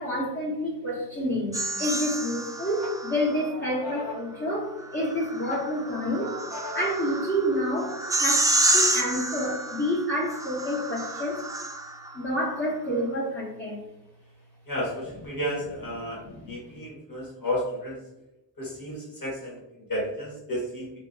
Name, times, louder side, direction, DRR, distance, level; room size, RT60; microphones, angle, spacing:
voice 1, 0.0-6.4 6.7-11.4 12.1-13.8 16.1-16.5, equal, 25° left, -6 dB, 0.8 m, -29 dB
sound 1, 1.5-3.5 4.9-12.1, right 1 dB, 10° right, 0.3 m, -29 dB
sound 2, 1.8-2.4 2.8-5.1 5.5-7.1, left 2 dB, 85° left, 0.9 m, -41 dB
voice 2, 14.7-16.2 16.5-18.0 18.6-19.6 19.9-20.9, equal, 50° left, -5 dB, 1.5 m, -32 dB
3.1 x 2.8 x 2.5 m, 0.96 s
wide cardioid pair, 55°, 45 cm